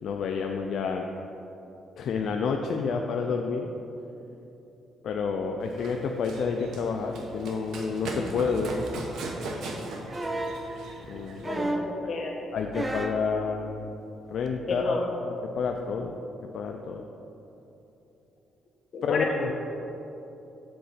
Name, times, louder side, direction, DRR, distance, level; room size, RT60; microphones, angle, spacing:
voice 1, 0.0-1.1 2.0-3.7 5.0-9.1 11.1-11.4 12.5-13.9 14.3-15.0 15.5-16.2 16.5-17.0 19.0-19.5, left 5 dB, 65° left, 3 dB, 0.4 m, -29 dB
Run, 5.6-11.6, right 2 dB, 75° right, 1.0 m, -38 dB
sound 1, 10.1-10.6 11.4-12.0 12.7-13.2 14.5-14.6, right 1 dB, 15° right, 0.5 m, -31 dB
voice 2, 11.4-12.6 14.7-15.1 18.9-19.5, left 3 dB, 45° left, -1 dB, 1.3 m, -31 dB
7.8 x 3.9 x 6.6 m, 3.0 s
cardioid pair, 125°, 0 cm